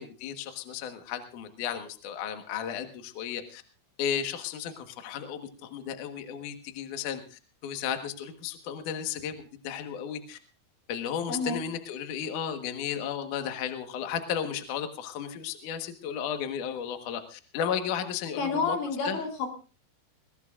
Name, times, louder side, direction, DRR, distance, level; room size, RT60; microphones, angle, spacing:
voice 1, 0.0-3.6 4.0-9.4 9.6-10.4 10.9-18.8 19.0-19.2, left 8 dB, 60° left, 6 dB, 2.3 m, -34 dB
voice 2, 11.3-11.6 18.4-19.5, left 4 dB, 80° left, 2 dB, 5.6 m, -29 dB
21.0 x 19.0 x 2.5 m, 0.34 s
omnidirectional pair, 5.1 m